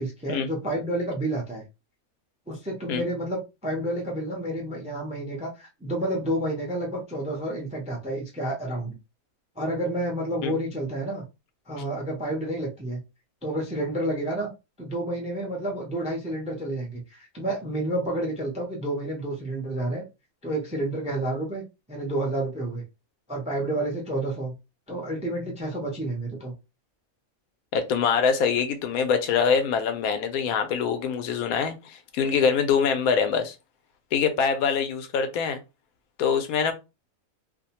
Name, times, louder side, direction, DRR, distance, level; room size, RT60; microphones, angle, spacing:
voice 1, 0.0-1.6 2.5-8.9 9.6-11.2 11.7-13.0 13.4-14.5 14.8-20.0 20.4-22.8 23.3-24.5 24.9-26.5, right 1 dB, 10° right, 0.4 m, -30 dB
voice 2, 27.7-33.5 34.1-35.6 36.2-36.7, left 6 dB, 85° left, 1.0 m, -24 dB
2.6 x 2.1 x 2.8 m
omnidirectional pair, 1.5 m